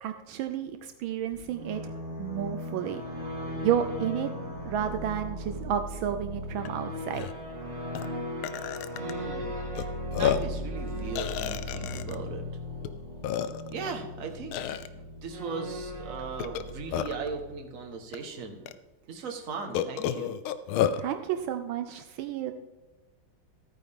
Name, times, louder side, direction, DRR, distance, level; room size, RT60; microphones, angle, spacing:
voice 1, 0.0-1.9 2.2-3.0 3.6-4.3 4.6-7.3 21.0-22.5, right 10 dB, 80° right, 8 dB, 1.4 m, -31 dB
sound 1, 1.3-17.9, left 1 dB, 20° right, 1.9 m, -37 dB
Burping eructation, 6.7-6.8 7.1-7.3 8.0-8.1 8.4-9.1 9.8-9.9 10.1-10.6 11.2-12.2 12.8-12.9 13.2-13.8 14.5-14.9 16.4-17.3 18.1-18.2 18.7-18.8 19.7-21.0, left 10 dB, 90° left, 1.5 m, -30 dB
voice 2, 9.0-9.6 10.2-12.4 13.7-18.6 19.1-20.4, right 4 dB, 45° right, 3 dB, 1.5 m, -38 dB
14.5 x 9.1 x 3.6 m, 1.2 s
omnidirectional pair, 2.2 m